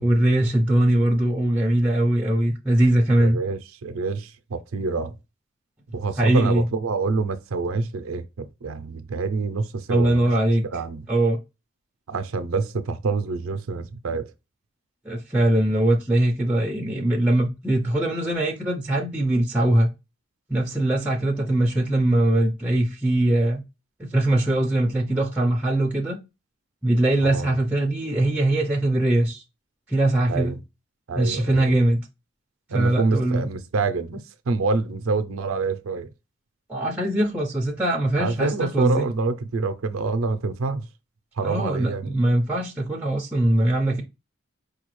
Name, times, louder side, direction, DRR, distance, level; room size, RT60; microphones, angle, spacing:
voice 1, 0.0-3.4 6.2-6.7 9.9-10.6 11.1-11.4 15.0-19.9 20.5-23.6 24.0-26.2 26.8-29.4 29.9-30.6 31.1-32.0 32.7-33.5 36.7-39.1 41.4-44.0, right 1 dB, 5° right, 0.5 m, -21 dB
voice 2, 3.2-5.2 5.9-10.3 10.7-11.1 12.1-14.3 27.2-27.5 30.3-30.6 31.1-31.7 32.7-36.1 38.2-40.9 41.4-42.2, right 4 dB, 85° right, 0.5 m, -26 dB
4.9 x 2.2 x 3.0 m
head